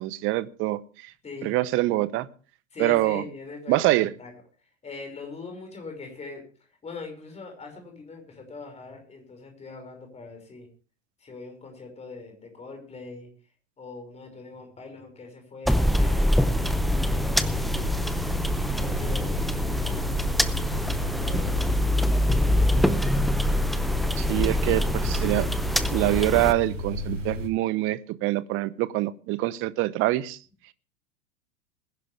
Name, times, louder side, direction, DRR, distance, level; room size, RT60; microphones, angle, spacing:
voice 1, 0.0-1.1 1.4-2.3 2.8-3.2 3.7-4.1 24.2-25.5 25.9-30.4, right 17 dB, 30° right, 0.9 m, -25 dB
voice 2, 1.2-1.7 2.7-4.3 4.8-6.4 6.8-10.7 11.2-13.3 13.8-18.0 18.8-22.6, left 4 dB, 15° left, 5.6 m, -42 dB
sound 1, 15.6-26.5, equal, ahead, 0.7 m, -24 dB
sound 2, 16.5-27.5, left 2 dB, 70° right, 4.4 m, -34 dB
20.5 x 11.0 x 3.4 m
figure-of-eight pair, 90°, 39 cm